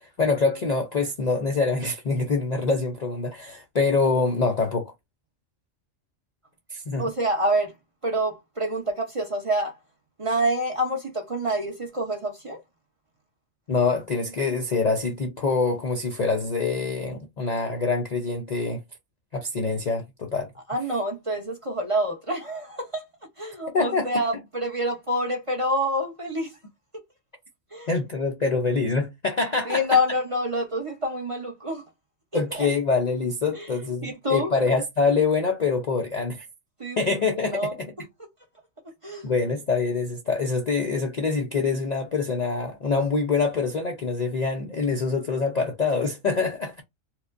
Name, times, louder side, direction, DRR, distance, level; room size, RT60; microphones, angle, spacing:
voice 1, 0.0-4.9 6.7-7.0 13.7-18.8 19.3-20.5 23.7-24.1 27.9-29.8 32.3-36.5 37.0-37.9 39.2-46.8, left 4 dB, 50° left, 0.5 m, -25 dB
voice 2, 7.0-7.7 8.0-9.7 10.2-12.6 20.7-23.0 23.4-26.6 27.7-27.9 29.6-31.8 32.3-32.7 33.5-34.5 36.8-37.7 39.0-39.3, equal, 30° right, 0.8 m, -27 dB
4.6 x 2.1 x 2.5 m
omnidirectional pair, 1.4 m